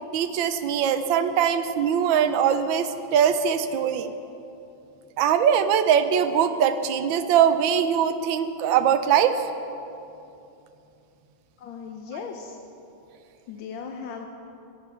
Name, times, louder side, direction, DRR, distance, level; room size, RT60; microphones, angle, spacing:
voice 1, 0.1-4.1 5.2-9.3, right 8 dB, 75° right, 9 dB, 1.4 m, -22 dB
voice 2, 11.6-12.6 13.5-14.3, left 6 dB, 80° left, 3 dB, 1.5 m, -37 dB
16.0 x 9.4 x 5.7 m, 2.7 s
omnidirectional pair, 2.2 m